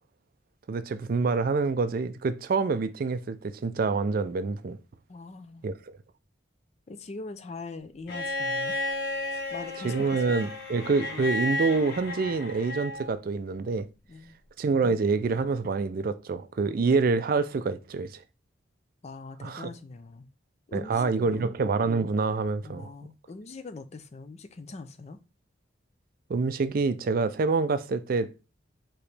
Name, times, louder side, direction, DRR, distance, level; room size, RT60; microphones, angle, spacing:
voice 1, 0.7-4.8 5.6-5.9 9.8-13.9 14.6-18.2 19.4-19.7 20.7-22.9 26.3-28.3, right 4 dB, 50° right, 0.4 m, -26 dB
voice 2, 5.1-5.7 6.9-9.0 9.3-10.2 14.1-14.4 16.8-16.9 19.0-20.3 20.7-21.5 22.6-25.2, left 3 dB, 35° left, 0.4 m, -42 dB
Bowed string instrument, 8.1-13.1 14.6-14.7, left 1 dB, 55° left, 0.8 m, -33 dB
4.8 x 3.0 x 3.2 m
head